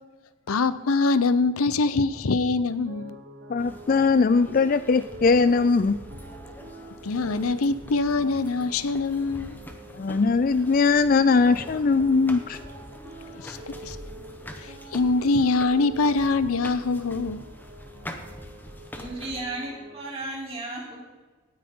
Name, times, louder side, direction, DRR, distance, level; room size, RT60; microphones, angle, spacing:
voice 1, 0.5-3.2 7.0-9.6 13.3-14.0 14.6-17.4, left 3 dB, 85° left, 14 dB, 0.7 m, -24 dB
sound 1, 2.9-20.0, right 1 dB, 60° right, 4.2 m, -46 dB
voice 2, 3.5-6.0 9.9-12.6, left 4 dB, 40° left, 14 dB, 0.3 m, -20 dB
sound 2, 3.6-19.5, left 1 dB, 10° left, 0.9 m, -44 dB
voice 3, 18.9-21.0, right 2 dB, 25° right, -3 dB, 3.5 m, -34 dB
18.0 x 9.7 x 3.7 m, 1.3 s
head